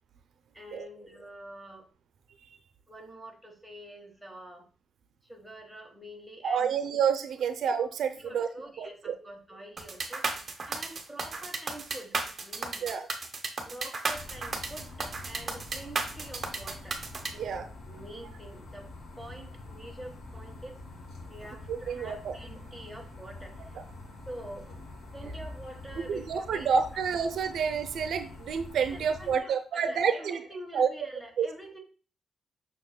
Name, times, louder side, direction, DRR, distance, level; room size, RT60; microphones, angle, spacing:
voice 1, 0.5-1.9 2.9-4.6 5.2-6.9 8.1-10.2 10.7-12.2 12.4-12.9 13.6-17.0 17.3-18.9 19.2-20.8 21.3-23.6 24.3-24.7 25.1-26.7 28.9-31.8, right 1 dB, ahead, 0 dB, 1.3 m, -46 dB
voice 2, 6.4-8.5 8.8-9.1 12.8-13.1 17.4-17.7 21.7-22.4 23.7-23.8 26.1-30.4 30.7-30.9 31.4-31.5, right 6 dB, 75° right, 8 dB, 0.6 m, -29 dB
sound 1, 9.8-17.3, right 4 dB, 35° right, 1.0 m, -33 dB
sound 2, 14.1-29.4, left 2 dB, 60° left, 1.9 m, -46 dB
7.0 x 6.0 x 2.2 m, 0.37 s
cardioid pair, 140°, 0 cm